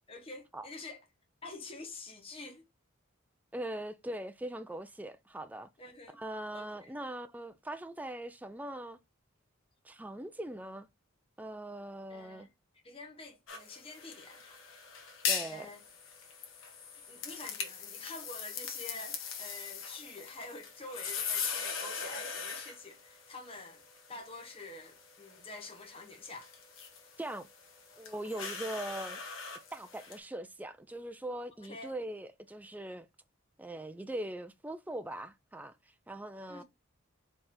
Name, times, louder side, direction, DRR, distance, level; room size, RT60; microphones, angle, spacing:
voice 1, 0.1-1.0 1.4-2.6 5.8-6.2 6.5-6.9 12.1-12.5 12.8-14.6 15.4-15.8 16.9-23.8 24.1-26.5 31.6-31.9 36.5-36.6, left 2 dB, 25° left, 1.2 m, -47 dB
voice 2, 3.5-5.7 6.1-9.0 9.8-10.9 11.4-12.5 15.3-15.7 27.2-27.5 28.0-29.2 29.7-33.1 33.6-35.8 36.1-36.6, right 1 dB, 5° right, 0.3 m, -41 dB
sound 1, 13.5-30.2, left 6 dB, 65° left, 1.2 m, -41 dB
4.3 x 3.3 x 3.7 m
head